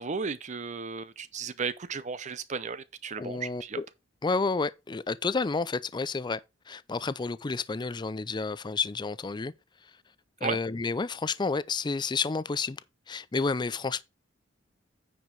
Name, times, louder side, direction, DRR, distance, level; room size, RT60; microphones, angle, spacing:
voice 1, 0.0-3.8 10.4-10.6, right 5 dB, 40° right, 0.5 m, -34 dB
voice 2, 3.2-3.9 4.2-6.4 6.7-9.5 10.4-12.8 13.1-14.0, left 4 dB, 25° left, 0.4 m, -30 dB
9.5 x 5.0 x 4.6 m
head